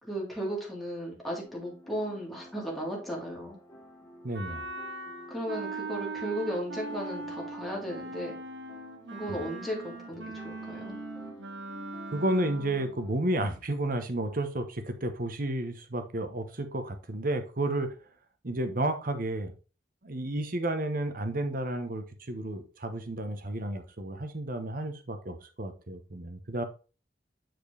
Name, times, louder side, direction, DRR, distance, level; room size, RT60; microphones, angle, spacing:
voice 1, 0.0-3.6 5.3-8.4 9.1-11.0, equal, ahead, -3 dB, 1.8 m, -35 dB
sound 1, 1.4-13.1, equal, 15° left, 1.4 m, -51 dB
voice 2, 4.2-4.6 9.3-9.4 12.1-17.9 18.4-19.5 20.0-26.6, right 1 dB, 50° right, 8 dB, 1.0 m, -32 dB
Wind instrument woodwind instrument, 4.3-13.0, right 3 dB, 75° right, 1.1 m, -40 dB
7.7 x 4.4 x 3.3 m, 0.33 s
head